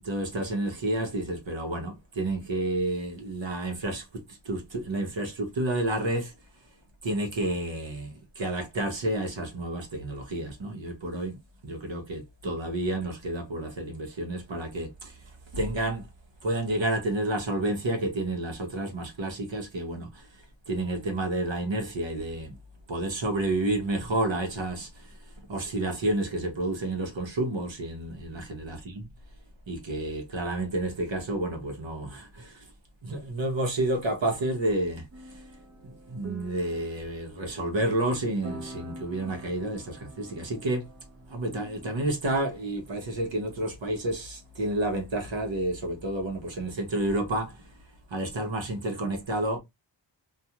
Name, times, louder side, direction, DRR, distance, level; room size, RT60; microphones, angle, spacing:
voice 1, 0.0-6.3 7.0-11.4 11.6-15.2 15.5-16.1 16.4-20.3 20.7-22.6 22.9-29.0 29.7-32.7 33.0-35.4 35.8-40.9 41.3-47.7 48.1-49.6, right 1 dB, 75° right, 0.9 m, -30 dB
sound 1, 35.1-44.8, right 1 dB, 35° right, 0.7 m, -47 dB
2.4 x 2.3 x 2.8 m
wide cardioid pair, 60°, 45 cm